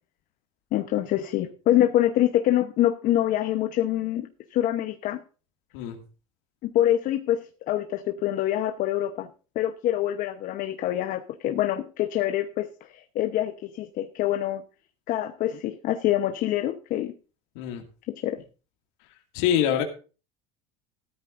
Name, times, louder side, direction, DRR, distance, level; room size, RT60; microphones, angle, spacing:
voice 1, 0.7-4.2 4.5-5.2 6.7-7.4 7.7-9.3 9.5-14.6 15.1-17.1 18.1-18.4, left 12 dB, 55° left, 8 dB, 1.0 m, -25 dB
voice 2, 19.3-19.8, left 10 dB, 75° left, 3 dB, 2.3 m, -24 dB
14.5 x 13.0 x 2.6 m, 0.35 s
supercardioid pair, 100°, 17 cm